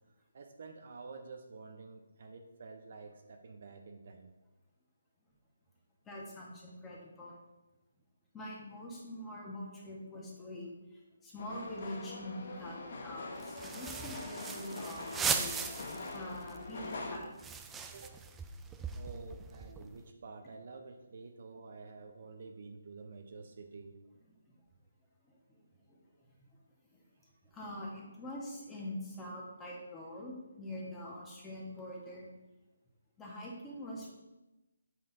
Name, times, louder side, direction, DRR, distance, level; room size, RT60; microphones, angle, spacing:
voice 1, 0.3-4.3 16.2-16.3 17.1-17.3 17.9-18.1 18.9-24.0, right 4 dB, 50° right, 5 dB, 0.8 m, -49 dB
voice 2, 6.1-7.4 8.3-15.5 16.1-17.3 25.2-25.6 25.9-26.0 26.9-27.0 27.5-32.3 33.2-34.1, left 1 dB, 10° left, -4 dB, 1.7 m, -44 dB
sound 1, 11.4-17.2, left 2 dB, 50° left, 1.1 m, -43 dB
sound 2, 13.4-16.2 16.5-16.6 16.8-20.0, right 5 dB, 10° right, 0.4 m, -38 dB
7.4 x 5.5 x 4.2 m, 1.0 s
figure-of-eight pair, 150°, 0 cm